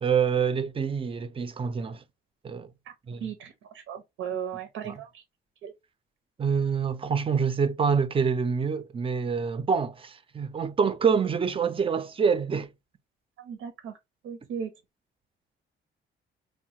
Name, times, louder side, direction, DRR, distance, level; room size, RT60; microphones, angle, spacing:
voice 1, 0.0-2.0 2.4-2.7 3.1-3.3 4.8-5.0 6.4-12.7, right 6 dB, 30° right, 0.4 m, -26 dB
voice 2, 3.2-5.2 5.6-5.7 13.4-13.9 14.2-14.7, right 8 dB, 85° right, 0.6 m, -36 dB
3.1 x 2.1 x 2.8 m
cardioid pair, 90°, 20 cm